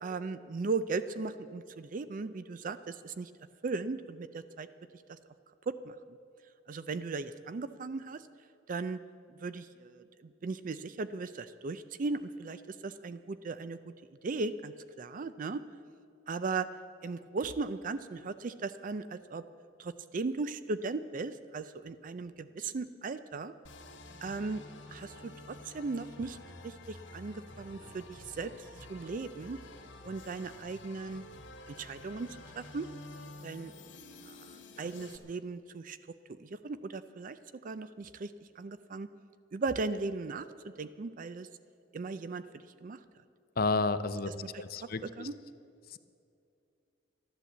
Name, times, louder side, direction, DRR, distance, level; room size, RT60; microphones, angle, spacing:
voice 1, 0.0-3.3 3.6-4.7 5.1-5.2 5.7-5.9 6.7-8.2 8.7-9.0 9.3-13.8 14.2-15.6 16.3-16.7 17.0-19.4 19.8-23.5 24.2-24.6 24.9-26.4 26.6-29.6 30.0-31.2 31.7-32.9 33.4-33.7 34.3-36.0 36.4-37.4 37.6-39.1 39.5-41.5 41.9-43.0 45.2-45.3, right 3 dB, 45° right, 13 dB, 0.4 m, -37 dB
sound 1, 23.6-35.2, left 2 dB, 90° left, 1.9 m, -50 dB
voice 2, 43.6-44.3 44.6-45.3 45.9-46.0, left 3 dB, 50° left, 12 dB, 0.6 m, -31 dB
13.5 x 11.0 x 7.9 m, 2.5 s
head